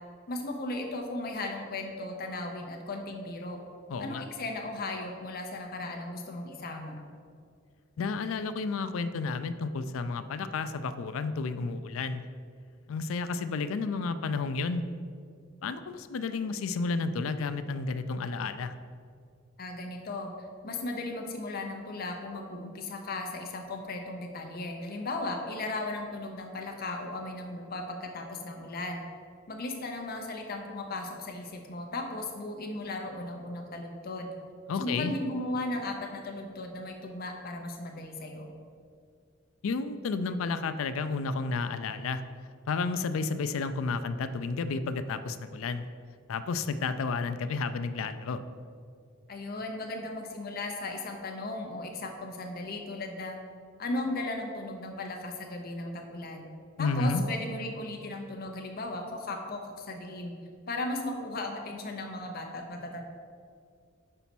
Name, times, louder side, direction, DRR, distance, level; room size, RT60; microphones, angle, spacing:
voice 1, 0.3-3.6 4.0-7.0 19.6-20.3 20.6-29.0 29.5-34.3 34.8-38.5 49.3-53.4 53.8-56.5 56.8-60.4 60.7-63.0, left 2 dB, 45° left, 3 dB, 0.8 m, -36 dB
voice 2, 3.9-4.2 8.0-12.2 12.9-14.8 15.6-18.7 34.7-35.1 39.6-42.2 42.7-45.9 46.3-48.4 56.8-57.2, left 4 dB, 75° left, 11 dB, 0.4 m, -31 dB
5.6 x 4.1 x 6.0 m, 2.2 s
head